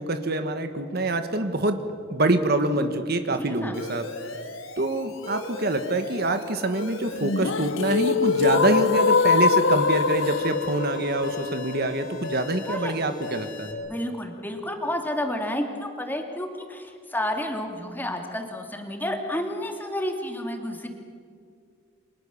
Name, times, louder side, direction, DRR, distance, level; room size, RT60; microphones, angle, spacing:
voice 1, 0.0-1.8 2.1-4.1 4.8-13.8, right 2 dB, 50° right, 8 dB, 1.5 m, -25 dB
voice 2, 3.4-3.8 12.7-12.9 13.8-20.9, left 1 dB, 10° left, 3 dB, 2.6 m, -30 dB
Alarm, 3.7-13.7, left 2 dB, 90° left, 3.9 m, -38 dB
sound 1, 7.2-13.2, left 4 dB, 70° left, 0.9 m, -23 dB
29.5 x 25.5 x 7.2 m, 2.2 s
head